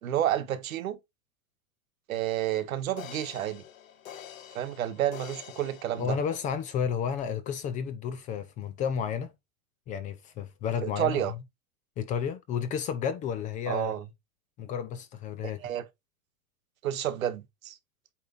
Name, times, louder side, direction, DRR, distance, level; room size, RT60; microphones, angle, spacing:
voice 1, 0.0-1.0 2.1-3.6 4.5-6.2 10.8-11.3 13.7-14.1 15.6-15.9 16.8-17.8, right 11 dB, 85° right, 1.5 m, -30 dB
sound 1, 2.2-2.3 3.0-6.7 7.2-7.3, left 10 dB, 75° left, 1.5 m, -47 dB
voice 2, 6.0-9.3 9.9-11.2 12.0-13.9 14.6-15.6, left 7 dB, 20° left, 0.5 m, -32 dB
8.7 x 3.5 x 4.0 m
supercardioid pair, 150°, 40 cm